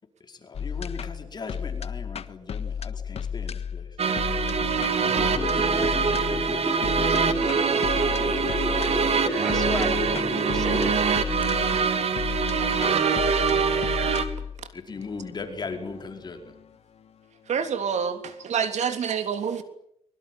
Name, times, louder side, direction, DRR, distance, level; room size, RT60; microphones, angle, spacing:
voice 1, 0.2-4.0 5.0-6.0 7.9-8.8 13.3-14.0 14.7-16.5, left 4 dB, 40° left, 5 dB, 4.8 m, -39 dB
sound 1, 0.5-17.7, left 7 dB, 60° left, 1.5 m, -34 dB
sound 2, 4.0-14.2, right 5 dB, 60° right, 3.0 m, -24 dB
sound 3, 5.0-10.9 11.4-11.5, equal, 15° right, 7.7 m, -33 dB
voice 2, 7.7-8.9 13.7-14.2 17.5-19.6, right 7 dB, 80° right, 8 dB, 3.4 m, -29 dB
voice 3, 8.2-8.6 9.2-11.0, left 1 dB, 5° left, 5 dB, 7.0 m, -34 dB
25.0 x 24.0 x 9.3 m, 0.74 s
wide cardioid pair, 170°, 12 cm